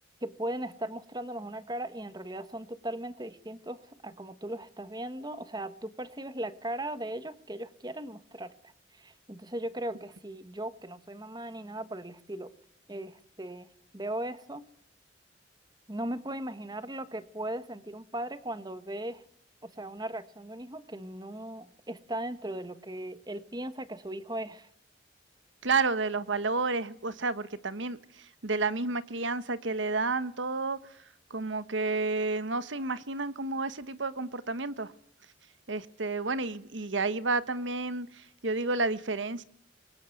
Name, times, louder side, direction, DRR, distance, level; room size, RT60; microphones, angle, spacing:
voice 1, 0.2-12.5 12.9-13.7 13.9-14.6 15.9-19.2 19.6-24.7, right 1 dB, 20° right, 1.2 m, -38 dB
voice 2, 25.6-30.8 31.3-34.9 35.7-39.4, right 3 dB, 85° right, 1.3 m, -31 dB
27.0 x 22.5 x 7.9 m
head